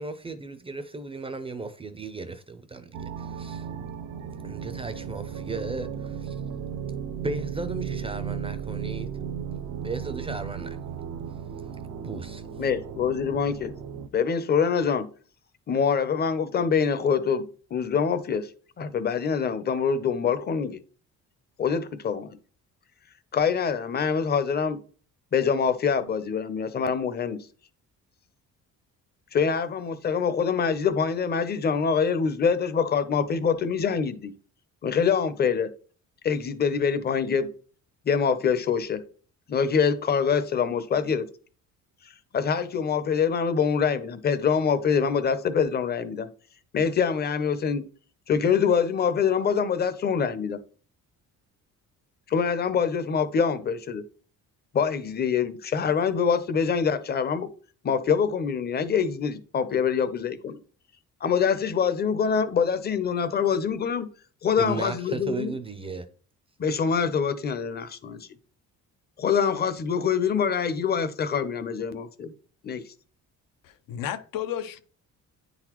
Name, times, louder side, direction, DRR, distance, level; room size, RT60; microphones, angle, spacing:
voice 1, 0.0-3.7 4.4-6.4 7.2-9.1 9.8-10.8 12.0-12.4 64.6-66.1, right 3 dB, 15° right, 0.4 m, -35 dB
sound 1, 2.9-14.1, right 7 dB, 75° right, 0.7 m, -35 dB
voice 2, 12.6-13.7 14.1-15.1 15.7-17.4 17.7-18.5 18.8-20.8 21.6-22.4 23.3-24.8 25.3-27.5 29.3-34.3 34.8-35.7 36.2-37.5 38.1-39.0 39.5-41.3 42.3-46.3 46.7-47.8 48.3-50.6 52.3-54.0 54.7-57.5 57.8-60.6 61.2-64.1 64.4-65.5 66.6-68.2 69.2-72.3 72.6-72.8, left 6 dB, 30° left, 0.6 m, -25 dB
voice 3, 73.6-74.8, left 10 dB, 85° left, 0.7 m, -33 dB
9.5 x 4.0 x 3.0 m
cardioid pair, 145°, 33 cm